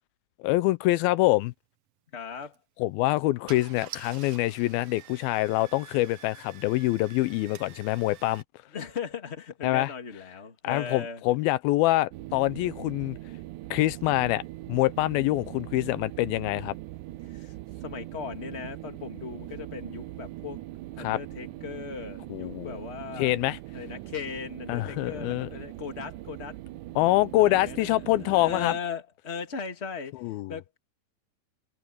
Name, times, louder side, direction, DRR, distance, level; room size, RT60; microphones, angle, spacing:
voice 1, 0.4-1.5 2.8-8.4 9.6-9.9 10.6-13.2 13.7-14.4 14.7-16.8 21.0-21.2 22.3-22.8 23.2-23.6 24.7-25.5 27.0-28.7 30.2-30.5, left 17 dB, 85° left, 2.4 m, -25 dB
voice 2, 2.1-2.6 8.7-11.2 17.3-17.5 17.8-20.6 20.9-23.4 23.7-26.6 27.4-28.0 28.2-30.2 30.5-30.8, left 6 dB, 20° left, 2.0 m, -38 dB
Car / Engine starting, 2.4-2.6 3.2-3.3 3.5-8.4, right 10 dB, 65° right, 1.6 m, -47 dB
sound 1, 12.1-28.8, right 16 dB, 85° right, 1.8 m, -41 dB
omnidirectional pair, 4.3 m